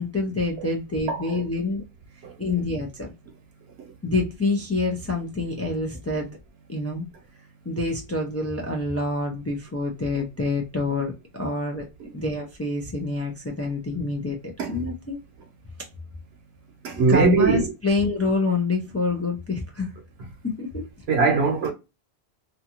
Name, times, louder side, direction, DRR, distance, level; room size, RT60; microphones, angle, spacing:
voice 1, 0.0-1.8 2.4-3.1 4.0-6.3 6.7-7.1 7.7-11.1 11.4-11.8 12.1-14.4 14.6-15.2 17.1-19.9 20.4-20.8, left 3 dB, 25° left, 0.3 m, -26 dB
voice 2, 1.1-1.4 2.2-2.4 3.8-3.9 12.0-12.1 14.6-14.8 16.8-17.7 21.1-21.7, right 4 dB, 75° right, 1.0 m, -21 dB
2.6 x 2.3 x 2.8 m
omnidirectional pair, 1.1 m